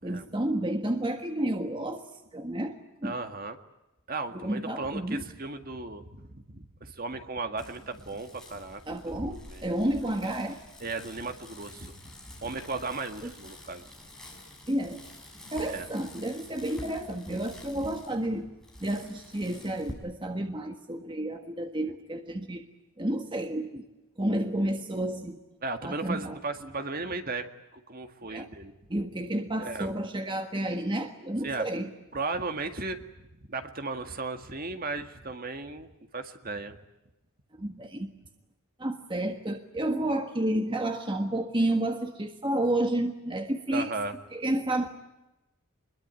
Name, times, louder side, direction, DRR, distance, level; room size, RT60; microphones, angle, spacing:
voice 1, 0.0-2.0 2.3-2.7 3.0-3.1 4.3-5.2 8.9-10.6 13.2-13.3 14.7-15.0 15.5-18.5 18.8-22.6 23.0-23.8 24.2-25.4 25.8-26.4 28.2-28.5 28.9-31.9 37.5-38.1 38.8-43.9 44.3-44.9, right 1 dB, 20° right, 5 dB, 1.5 m, -30 dB
voice 2, 3.0-3.6 4.1-9.1 9.5-9.7 10.8-12.1 12.4-13.8 15.7-15.9 25.6-28.7 29.6-29.9 31.4-31.7 32.1-33.0 33.5-36.8 43.7-44.1, right 3 dB, 40° right, 7 dB, 1.9 m, -36 dB
Bicycle, 7.6-19.9, left 1 dB, 5° left, 6.0 m, -47 dB
25.5 x 22.0 x 9.6 m, 0.97 s
head